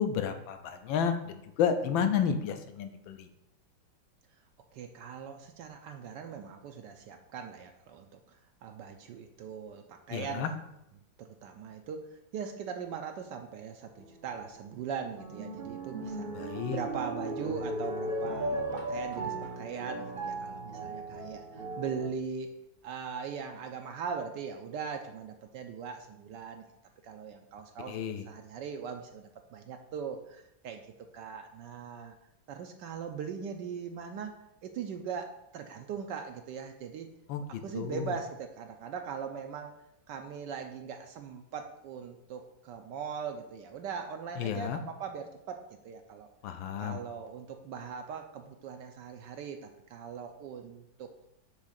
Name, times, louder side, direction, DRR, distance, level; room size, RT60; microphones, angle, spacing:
voice 1, 0.0-3.3 10.1-10.5 16.3-16.8 27.9-28.3 37.3-38.1 44.4-44.8 46.4-47.0, left 7 dB, 80° left, 8 dB, 1.3 m, -31 dB
voice 2, 4.7-8.2 8.6-10.6 11.2-12.1 12.3-22.5 22.8-26.6 27.0-30.8 31.1-32.2 32.5-37.1 37.6-39.7 40.1-46.3 46.8-51.1, right 6 dB, 75° right, 5 dB, 1.1 m, -40 dB
sound 1, 14.0-14.4 14.9-22.1, right 1 dB, 35° right, 1.1 m, -37 dB
6.3 x 3.5 x 5.7 m, 0.83 s
omnidirectional pair, 2.1 m